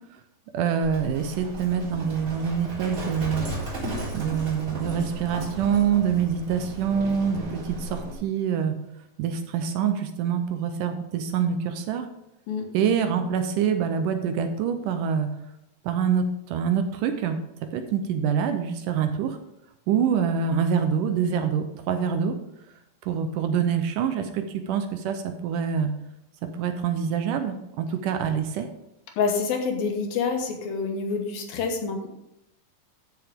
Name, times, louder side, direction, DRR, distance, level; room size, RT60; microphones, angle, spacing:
voice 1, 0.5-3.5 4.1-8.8 9.2-12.1 12.7-15.3 15.8-17.4 17.7-19.4 19.9-22.4 23.0-25.9 26.4-28.7, right 7 dB, 75° right, 7 dB, 2.1 m, -25 dB
Livestock farm animals working animals, 0.8-8.2, right 1 dB, 35° right, 4.1 m, -35 dB
voice 2, 29.2-32.1, left 5 dB, 80° left, 3 dB, 3.1 m, -27 dB
14.0 x 6.3 x 3.6 m, 0.82 s
omnidirectional pair, 4.1 m